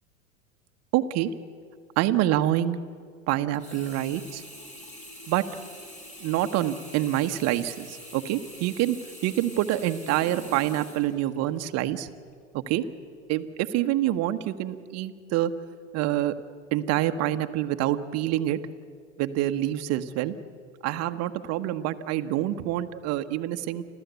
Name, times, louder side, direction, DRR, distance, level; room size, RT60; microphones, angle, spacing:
voice 1, 0.9-1.3 2.0-2.8 3.3-4.4 5.3-5.4 6.2-9.0 9.2-12.1 12.5-12.8 13.3-15.5 15.9-16.3 16.7-18.6 19.2-20.3 20.8-23.8, right 13 dB, 40° right, 9 dB, 1.2 m, -26 dB
Sink (filling or washing), 3.5-11.8 12.3-12.4, left 1 dB, 20° left, 3.5 m, -45 dB
30.0 x 13.0 x 8.2 m, 2.2 s
hypercardioid pair, 100°, 38 cm